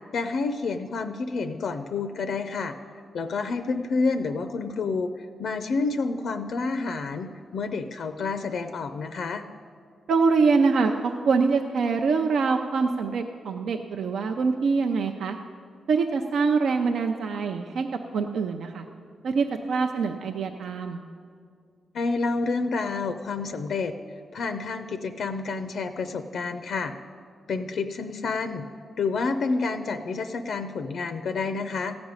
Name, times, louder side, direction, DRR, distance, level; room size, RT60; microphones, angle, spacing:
voice 1, 0.1-2.8 3.1-5.1 5.4-9.5 21.9-23.9 24.3-26.9 27.5-28.6 29.0-32.0, left 4 dB, 70° left, 9 dB, 0.5 m, -29 dB
voice 2, 10.1-15.4 15.9-17.9 18.1-18.8 19.2-21.0, right 4 dB, 75° right, 4 dB, 0.6 m, -24 dB
15.0 x 5.2 x 9.6 m, 2.2 s
wide cardioid pair, 135°, 0 cm